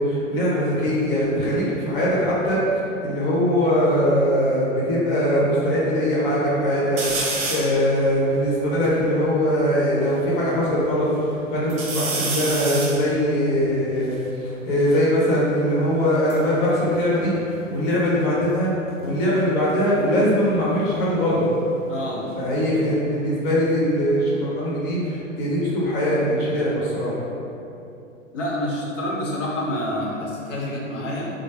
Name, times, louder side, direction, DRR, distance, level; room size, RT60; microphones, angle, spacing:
voice 1, 0.0-2.6 3.0-17.3 17.7-18.7 19.0-21.4 22.4-27.2, equal, 40° left, -6 dB, 1.0 m, -21 dB
sound 1, 7.0-7.8 8.4-8.5 8.6-10.2 10.7-11.3 11.7-15.1 16.0-17.9 18.2-18.7 20.2-22.9 23.2-24.0, right 3 dB, 50° right, 0.6 m, -32 dB
voice 2, 21.9-22.2 28.3-31.3, left 1 dB, 65° left, -4 dB, 0.8 m, -27 dB
3.2 x 2.0 x 3.3 m, 2.7 s
figure-of-eight pair, 100°, 40 cm